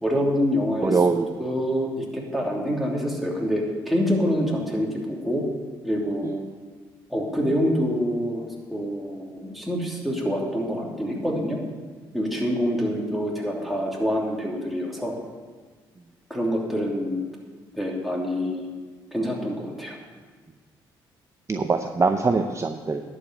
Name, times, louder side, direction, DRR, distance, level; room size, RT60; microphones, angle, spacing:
voice 1, 0.0-1.0 1.4-5.4 5.8-6.4 7.1-11.6 12.1-15.1 16.3-17.2 17.7-18.7 19.1-20.0, equal, ahead, -2 dB, 2.9 m, -26 dB
voice 2, 0.8-1.3 6.2-6.3 21.5-23.0, right 4 dB, 30° right, 6 dB, 0.7 m, -22 dB
11.0 x 5.1 x 7.9 m, 1.5 s
supercardioid pair, 60°, 10 cm